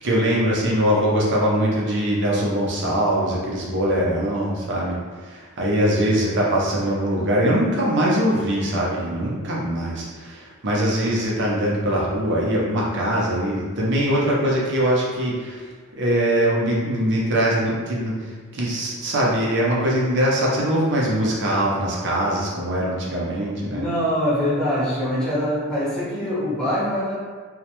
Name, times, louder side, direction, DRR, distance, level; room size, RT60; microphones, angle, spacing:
voice 1, 0.0-5.0 5.3-15.6 15.9-18.2 18.5-23.8, equal, 55° right, -4 dB, 0.6 m, -22 dB
voice 2, 23.7-27.1, equal, 5° left, -11 dB, 0.9 m, -23 dB
2.3 x 2.1 x 2.8 m, 1.5 s
head